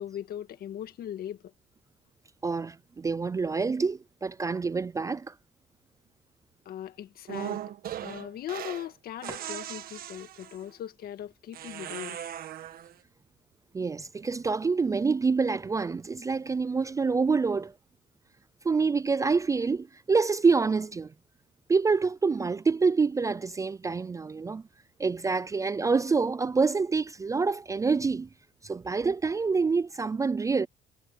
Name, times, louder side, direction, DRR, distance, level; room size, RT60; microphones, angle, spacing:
voice 1, 0.0-1.4 6.7-7.6 8.0-12.2, left 11 dB, 65° left, 1.9 m, -39 dB
voice 2, 2.4-5.3 13.7-17.7 18.6-21.1 21.7-24.6 25.0-28.3 28.6-30.7, right 4 dB, 20° right, 0.4 m, -26 dB
sound 1, 7.3-8.9 9.2-10.7 11.5-12.9, right 11 dB, 60° right, 1.4 m, -38 dB
cardioid pair, 110°, 17 cm